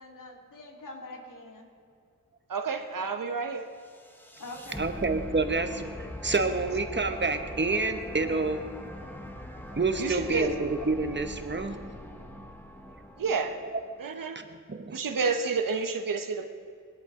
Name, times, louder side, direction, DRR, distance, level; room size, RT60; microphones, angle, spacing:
voice 1, 0.0-1.7 4.4-4.9, left 2 dB, 70° left, 1 dB, 2.3 m, -44 dB
voice 2, 2.5-3.6 10.0-10.5 13.2-13.5 14.0-14.4 14.9-16.5, right 5 dB, 80° right, 7 dB, 1.2 m, -29 dB
sound 1, 3.8-14.0, left 1 dB, 5° left, 1.1 m, -42 dB
voice 3, 4.8-8.6 9.7-11.8 14.3-15.0, right 3 dB, 35° right, 7 dB, 1.1 m, -28 dB
21.0 x 12.5 x 3.8 m, 2.3 s
wide cardioid pair, 95°, 33 cm